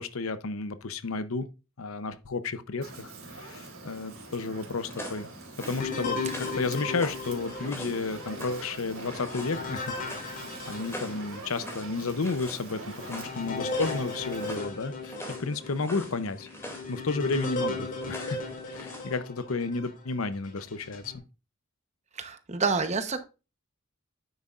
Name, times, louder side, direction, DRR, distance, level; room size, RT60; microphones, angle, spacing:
voice 1, 0.0-1.5 1.8-5.3 5.6-10.4 10.7-15.1 15.4-16.5 16.9-18.4 18.7-21.1, left 3 dB, 80° left, 0.8 m, -32 dB
Fire, 2.8-14.6, right 2 dB, 85° right, 3.2 m, -44 dB
sound 1, 4.0-19.2, left 1 dB, 10° left, 2.5 m, -44 dB
sound 2, 5.8-11.6 12.1-12.2 12.8-20.0 20.6-21.2, left 3 dB, 40° left, 2.2 m, -36 dB
voice 2, 22.2-23.2, right 4 dB, 35° right, 0.9 m, -28 dB
9.4 x 8.1 x 2.5 m
head